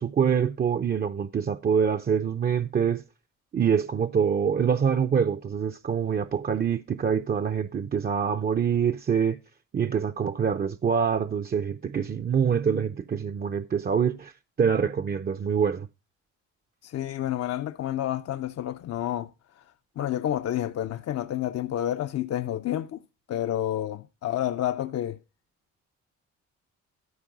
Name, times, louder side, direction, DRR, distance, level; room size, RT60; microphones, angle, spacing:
voice 1, 0.0-3.0 3.5-9.4 9.7-14.3 14.6-15.9, right 7 dB, 30° right, 0.5 m, -25 dB
voice 2, 16.8-19.3 20.0-23.0 23.3-25.2, left 12 dB, 55° left, 0.5 m, -29 dB
12.5 x 4.6 x 6.0 m
cardioid pair, 90°, 30 cm